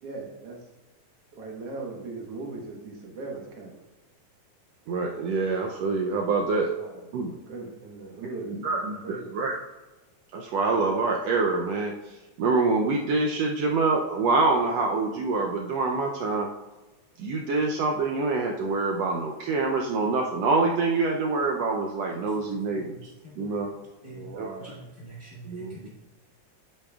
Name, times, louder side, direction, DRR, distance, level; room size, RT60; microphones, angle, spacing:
voice 1, 0.0-0.7 1.3-3.8 6.7-9.4 24.0-24.9, right 3 dB, 60° right, 0 dB, 2.0 m, -39 dB
voice 2, 4.9-6.7 7.1-7.3 8.5-9.5 10.3-16.5 17.2-23.1 23.4-23.7 24.3-24.5 25.4-25.9, right 3 dB, 75° right, 1 dB, 1.6 m, -26 dB
voice 3, 22.4-23.6 24.0-24.3 24.6-25.9, right 1 dB, 40° left, -6 dB, 1.0 m, -46 dB
8.5 x 8.4 x 2.4 m, 1.1 s
omnidirectional pair, 3.4 m